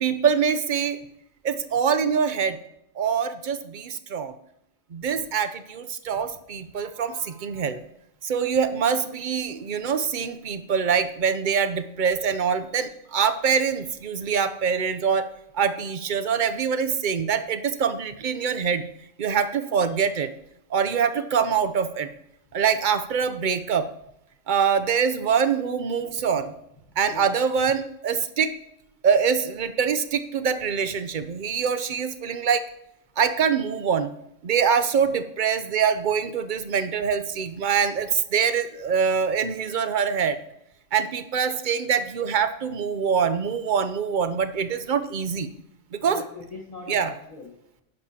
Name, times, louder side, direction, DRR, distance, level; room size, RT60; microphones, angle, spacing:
voice 1, 0.0-1.0 1.4-2.6 3.0-4.3 4.9-7.8 8.2-15.3 15.5-18.8 19.2-20.3 20.7-22.1 22.5-23.9 24.5-26.5 27.0-28.5 29.0-32.6 33.2-34.1 34.4-40.4 40.9-45.5 45.9-46.2 46.9-47.1, right 6 dB, 50° right, 11 dB, 0.6 m, -24 dB
voice 2, 46.0-47.8, left 3 dB, 30° left, -4 dB, 1.3 m, -41 dB
11.0 x 10.5 x 2.8 m, 0.81 s
omnidirectional pair, 1.4 m